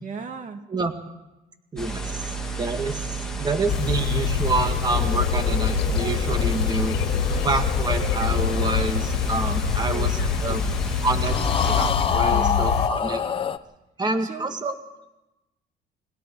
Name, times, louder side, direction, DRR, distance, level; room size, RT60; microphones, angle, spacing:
voice 1, 0.0-0.7 2.9-3.0 9.9-10.8 12.3-12.7 14.2-14.5, right 5 dB, 45° right, 6 dB, 2.1 m, -36 dB
voice 2, 1.7-2.1 2.6-7.0 7.3-10.6 11.0-13.2 14.0-14.7, right 3 dB, 25° right, 6 dB, 2.0 m, -27 dB
sound 1, 1.8-11.9, right 4 dB, 5° left, 2.9 m, -32 dB
sound 2, 3.7-12.9, left 8 dB, 75° left, 1.9 m, -25 dB
sound 3, 4.6-10.2 11.2-13.6, left 7 dB, 30° left, 1.0 m, -29 dB
29.5 x 21.5 x 4.7 m, 0.96 s
cardioid pair, 110°, 17 cm